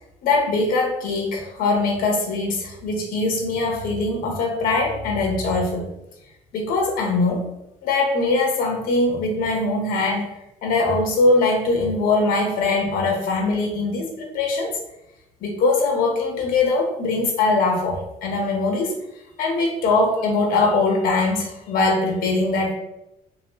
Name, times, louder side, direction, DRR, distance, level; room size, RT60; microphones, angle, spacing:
voice 1, 0.2-5.8 6.5-7.4 7.8-10.3 10.6-14.7 15.4-18.9 19.4-22.7, left 3 dB, 80° left, 1 dB, 1.0 m, -21 dB
3.1 x 3.0 x 3.0 m, 0.88 s
cardioid pair, 145°, 15 cm